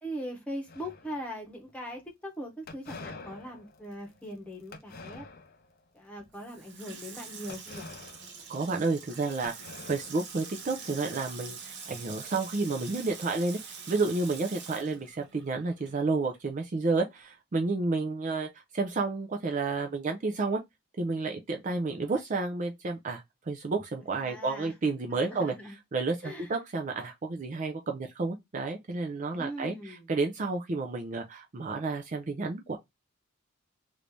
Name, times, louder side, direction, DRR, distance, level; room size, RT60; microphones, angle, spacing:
voice 1, 0.0-5.3 5.9-7.9 24.2-24.7 25.1-25.8 26.2-26.5 29.3-30.1, equal, 5° left, 1.1 m, -40 dB
sound 1, 0.7-1.5 2.7-5.8 6.2-6.5 7.5-9.1 9.4-10.8, left 3 dB, 45° left, 0.6 m, -47 dB
Water tap faucet / Sink (filling or washing), 6.3-16.0 16.4-16.5, right 5 dB, 55° right, 0.8 m, -45 dB
voice 2, 8.5-13.6 13.9-18.5 18.7-20.6 21.0-25.5 25.9-32.8, right 3 dB, 35° right, 0.4 m, -31 dB
3.1 x 2.6 x 3.2 m
head